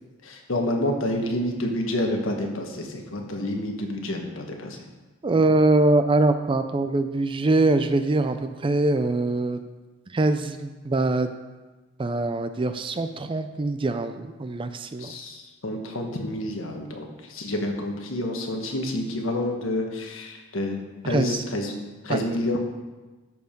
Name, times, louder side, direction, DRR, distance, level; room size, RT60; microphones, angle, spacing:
voice 1, 0.2-4.8 15.0-20.8 21.0-21.7 22.0-22.6, left 1 dB, 65° left, 2 dB, 1.4 m, -28 dB
voice 2, 5.2-9.6 10.1-11.3 12.0-15.1 21.0-21.4 22.1-22.2, right 2 dB, 25° right, 9 dB, 0.4 m, -23 dB
13.0 x 4.8 x 5.2 m, 1.2 s
head